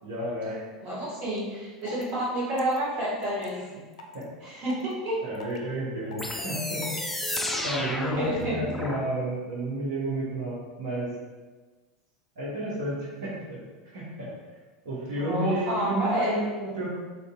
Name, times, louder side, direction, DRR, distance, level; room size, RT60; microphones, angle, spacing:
voice 1, 0.0-0.6 4.1-4.3 5.2-7.0 7.4-11.1 12.4-13.6 13.9-14.3 14.8-16.9, right 1 dB, 65° right, -8 dB, 1.0 m, -31 dB
voice 2, 0.8-3.6 4.4-5.2 8.0-8.6 15.1-16.3, right 1 dB, 45° right, -7 dB, 1.5 m, -29 dB
sound 1, 1.4-1.5 1.8-2.1 2.6-2.8 3.2-3.5 3.9-4.2 4.7-4.9 5.3-5.6 6.1-6.4 6.8-7.0 7.5-7.7 8.2-8.4, left 3 dB, 70° left, 0.4 m, -43 dB
sound 2, 6.2-9.0, left 1 dB, 5° left, 0.4 m, -32 dB
4.1 x 2.7 x 2.4 m, 1.3 s
hypercardioid pair, 85°, 4 cm